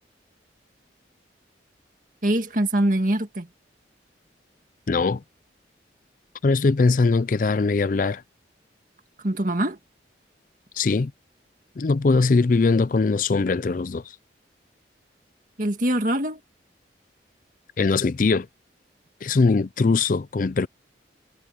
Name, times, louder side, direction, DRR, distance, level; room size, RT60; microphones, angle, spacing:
voice 1, 2.2-3.5 9.2-9.8 15.6-16.4, right 1 dB, 45° right, 2.0 m, -23 dB
voice 2, 4.9-5.2 6.4-8.2 10.8-11.1 11.8-14.0 17.8-18.5 19.2-20.7, left 4 dB, 45° left, 0.4 m, -21 dB
head